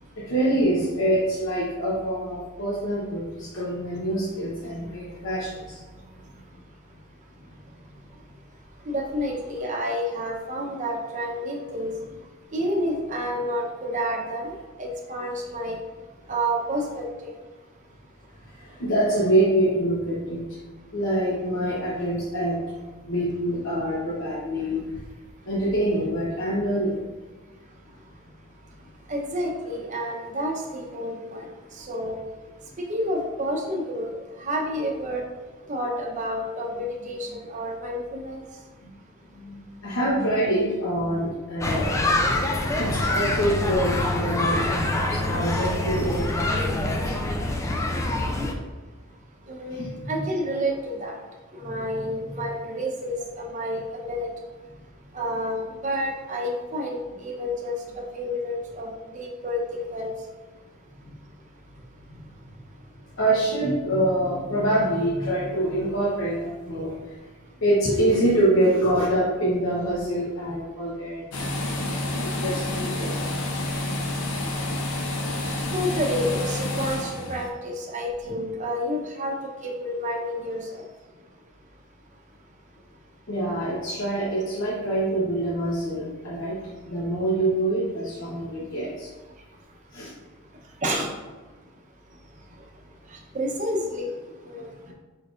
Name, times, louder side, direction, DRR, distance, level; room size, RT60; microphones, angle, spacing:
voice 1, 0.2-5.8 18.5-20.4 20.9-22.6 23.1-24.8 25.4-27.0 37.0-37.4 39.4-41.9 42.8-47.1 49.7-50.3 51.6-52.5 61.0-61.1 62.1-62.5 63.2-67.1 67.6-71.3 72.2-73.3 78.3-78.4 83.3-89.1 89.9-90.1, right 1 dB, 60° left, -7 dB, 1.0 m, -25 dB
voice 2, 8.9-11.9 12.5-15.8 16.3-17.4 29.1-32.1 32.9-34.1 34.4-35.2 35.7-38.4 49.5-49.8 50.1-51.1 51.5-54.3 55.1-55.6 55.8-58.9 59.1-60.1 75.4-79.4 79.6-80.8 90.8-91.1 93.1-94.1 94.4-94.9, equal, 35° right, -1 dB, 0.8 m, -29 dB
sound 1, 41.6-48.5, left 2 dB, 15° left, 0.3 m, -25 dB
sound 2, 71.3-77.5, left 1 dB, 85° left, 0.7 m, -29 dB
4.8 x 4.3 x 2.5 m, 1.3 s
head